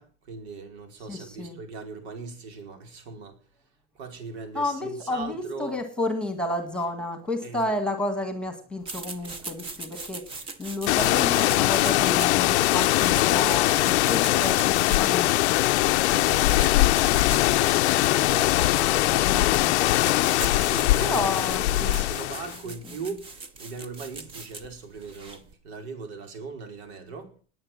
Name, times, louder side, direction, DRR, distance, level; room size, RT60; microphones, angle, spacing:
voice 1, 0.0-3.4 3.9-5.8 7.4-7.8 9.2-9.5 20.5-27.3, right 4 dB, 70° right, 4.9 m, -39 dB
voice 2, 1.1-1.6 4.5-20.2 21.0-22.0 22.9-23.0, left 1 dB, 5° left, 1.7 m, -32 dB
sound 1, 8.8-25.5, right 3 dB, 15° right, 0.9 m, -40 dB
sound 2, 10.9-22.6, left 17 dB, 75° left, 0.7 m, -21 dB
20.0 x 8.0 x 7.5 m
supercardioid pair, 180°, 34 cm